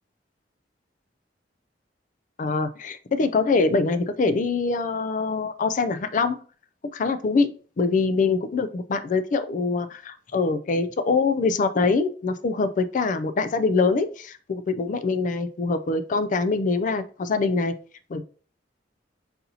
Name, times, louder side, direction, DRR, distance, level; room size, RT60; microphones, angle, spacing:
voice 1, 2.4-6.4 6.9-7.5 7.8-17.7 18.1-18.2, left 4 dB, 45° left, 11 dB, 0.4 m, -24 dB
4.1 x 4.0 x 2.8 m, 0.39 s
head